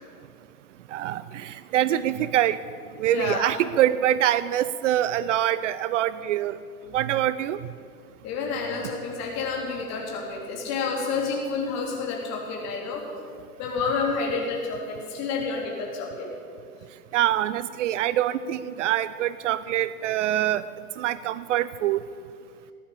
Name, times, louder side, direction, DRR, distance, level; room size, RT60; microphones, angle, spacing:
voice 1, 0.9-2.6 3.0-6.6 6.9-7.6 17.1-20.7 21.0-22.0, right 12 dB, 55° right, 16 dB, 0.6 m, -24 dB
voice 2, 3.1-3.5 8.2-13.0 13.6-16.3, left 4 dB, 35° left, -1 dB, 3.5 m, -29 dB
15.0 x 10.5 x 8.6 m, 2.2 s
hypercardioid pair, 125°, 46 cm